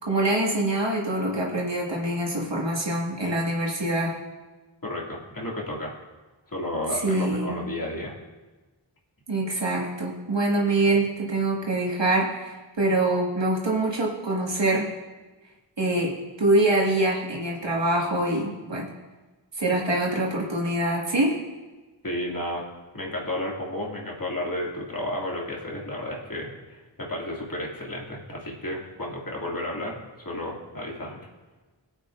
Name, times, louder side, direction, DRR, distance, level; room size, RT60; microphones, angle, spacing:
voice 1, 0.0-4.2 6.9-7.6 9.3-14.9 15.8-18.9 19.5-21.4, right 2 dB, 70° right, -3 dB, 2.0 m, -25 dB
voice 2, 4.8-5.9 6.5-8.1 22.0-22.6 22.9-30.0 30.2-31.2, left 1 dB, 45° left, -3 dB, 2.6 m, -32 dB
21.5 x 8.8 x 2.6 m, 1.2 s
wide cardioid pair, 65°, 45 cm